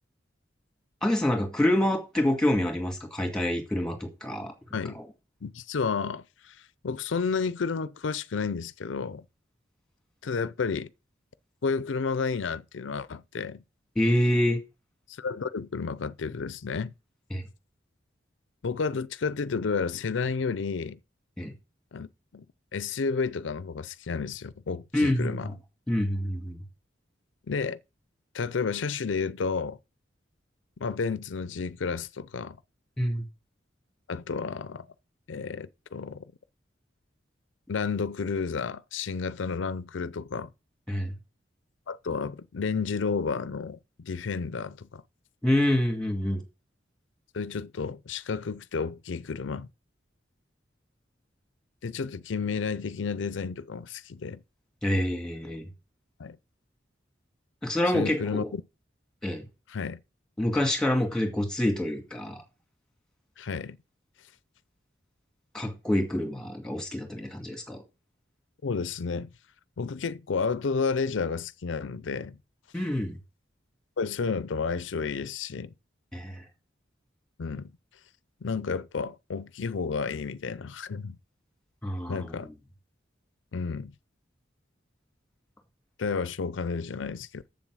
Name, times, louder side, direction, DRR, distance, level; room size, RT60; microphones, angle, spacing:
voice 1, 1.0-4.5 5.0-5.1 14.0-14.6 17.3-17.4 21.4-21.5 24.9-25.5 25.9-26.6 33.0-33.2 40.9-41.1 45.4-46.4 54.8-55.6 57.6-58.5 59.2-59.5 60.4-62.4 65.5-67.8 72.7-73.2 76.1-76.4 81.8-82.3, left 1 dB, 5° left, 2.1 m, -27 dB
voice 2, 5.4-9.2 10.2-10.9 11.6-13.6 15.1-16.9 18.6-21.0 21.9-22.1 22.3-22.4 22.7-25.5 27.5-27.8 28.3-29.8 30.8-32.6 34.1-34.9 35.3-36.2 37.7-40.5 41.9-45.0 47.3-49.7 51.8-54.4 56.2-56.4 57.9-58.6 59.7-60.0 63.4-63.8 68.6-69.3 69.8-72.4 74.0-75.7 77.4-77.7 78.4-81.2 82.1-82.5 83.5-83.9 86.0-87.5, left 5 dB, 90° left, 0.5 m, -31 dB
7.4 x 7.2 x 6.2 m
head